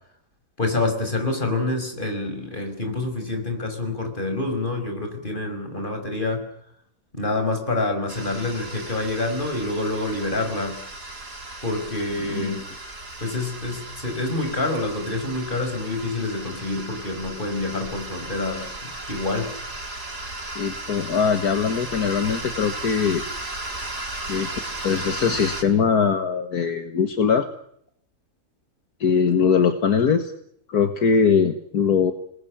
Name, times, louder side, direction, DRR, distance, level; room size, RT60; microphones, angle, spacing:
voice 1, 0.6-6.5 7.1-10.8 11.6-12.6 13.2-19.5, left 2 dB, 30° left, 6 dB, 5.8 m, -27 dB
sound 1, 8.1-25.6, right 2 dB, 75° right, 5.1 m, -35 dB
voice 2, 12.2-12.6 20.6-23.2 24.3-24.5 24.8-27.5 29.0-30.3 30.7-32.1, left 6 dB, 70° left, 8 dB, 2.0 m, -21 dB
28.0 x 20.5 x 8.9 m, 0.71 s
omnidirectional pair, 1.7 m